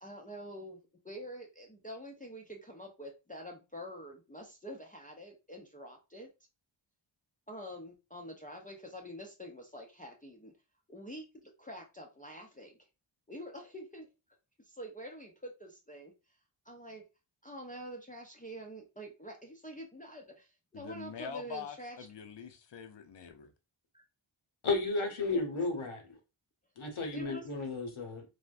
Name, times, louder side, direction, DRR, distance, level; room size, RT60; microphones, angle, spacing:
voice 1, 0.0-6.3 7.5-10.5 10.9-12.7 13.3-14.1 14.6-16.1 16.6-17.0 17.4-22.0 23.9-24.0 25.3-25.4 27.1-27.4, equal, 20° left, 0.4 m, -46 dB
voice 2, 20.7-23.5, left 6 dB, 60° left, 0.6 m, -44 dB
voice 3, 24.6-26.1 26.8-28.2, left 3 dB, 90° left, 0.9 m, -33 dB
3.3 x 2.1 x 2.5 m
wide cardioid pair, 75°, 48 cm